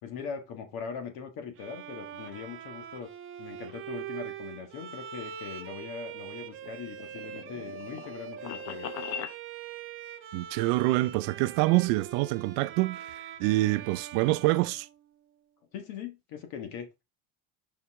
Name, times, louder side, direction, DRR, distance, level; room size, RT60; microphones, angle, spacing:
voice 1, 0.0-3.1 3.4-8.9 15.7-16.9, left 6 dB, 60° left, 1.7 m, -40 dB
Bowed string instrument, 1.6-15.5, right 9 dB, 30° right, 0.7 m, -43 dB
sound 1, 6.5-9.4, left 9 dB, 80° left, 1.0 m, -40 dB
voice 2, 10.3-13.1 13.4-14.9, right 19 dB, 80° right, 0.6 m, -26 dB
5.6 x 4.9 x 3.6 m
cardioid pair, 160°, 40 cm